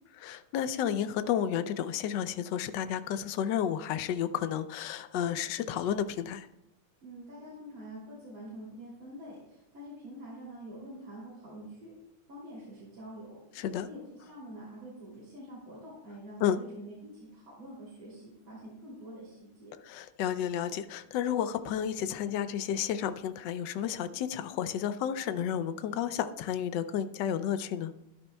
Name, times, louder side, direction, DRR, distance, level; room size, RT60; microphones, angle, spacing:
voice 1, 0.2-6.5 13.6-13.9 16.4-16.6 19.8-27.9, left 9 dB, 75° left, 11 dB, 1.1 m, -31 dB
voice 2, 7.0-11.9 12.3-13.4 13.8-19.8, right 1 dB, 65° right, -7 dB, 3.6 m, -46 dB
14.0 x 11.0 x 2.2 m, 0.88 s
omnidirectional pair, 2.4 m